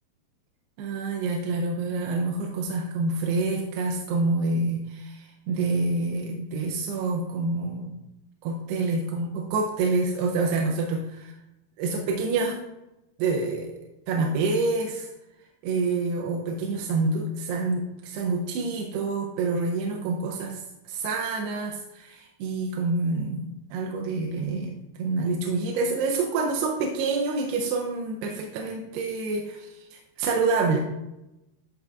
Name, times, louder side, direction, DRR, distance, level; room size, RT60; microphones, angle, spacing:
voice 1, 0.8-8.0 8.4-11.4 11.8-12.6 13.2-15.1 15.6-30.8, right 3 dB, 80° right, 0 dB, 2.5 m, -27 dB
10.5 x 3.9 x 2.3 m, 0.93 s
omnidirectional pair, 4.9 m